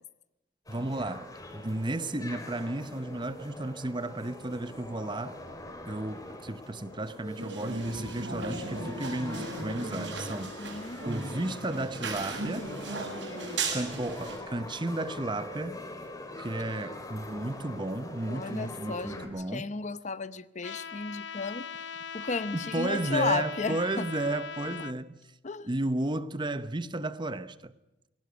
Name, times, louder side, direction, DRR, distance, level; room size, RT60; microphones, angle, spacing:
sound 1, 0.7-19.3, left 1 dB, 20° left, 3.4 m, -43 dB
voice 1, 0.7-5.4 5.8-10.5 11.1-12.7 13.7-15.8 16.4-19.7 22.2-25.2 25.6-27.7, right 2 dB, 25° right, 0.8 m, -33 dB
sound 2, 7.4-14.4, right 3 dB, 80° right, 6.3 m, -36 dB
voice 2, 10.6-11.1 18.3-21.7 22.1-24.1 25.4-25.7, left 4 dB, 40° left, 0.8 m, -34 dB
Trumpet, 20.6-24.9, left 7 dB, 80° left, 1.0 m, -40 dB
21.5 x 18.0 x 9.2 m
head